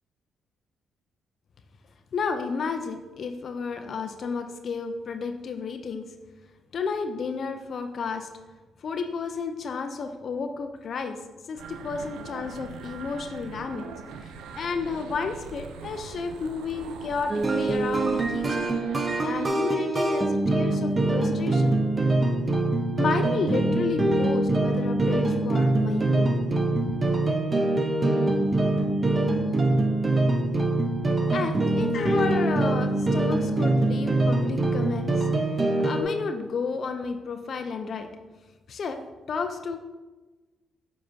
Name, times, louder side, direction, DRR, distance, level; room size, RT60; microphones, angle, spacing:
voice 1, 2.1-6.0 6.7-8.3 8.8-11.2 11.5-13.9 14.2-18.7 19.2-21.7 23.0-26.3 26.9-27.0 31.3-35.3 35.8-38.1 38.7-39.0 39.3-39.8, left 5 dB, 60° left, 7 dB, 0.5 m, -32 dB
sound 1, 11.6-19.5, right 5 dB, 85° right, 0.5 m, -42 dB
sound 2, 17.3-36.0, right 2 dB, 30° right, 0.8 m, -24 dB
7.3 x 5.7 x 2.7 m, 1.2 s
supercardioid pair, 60°, 0 cm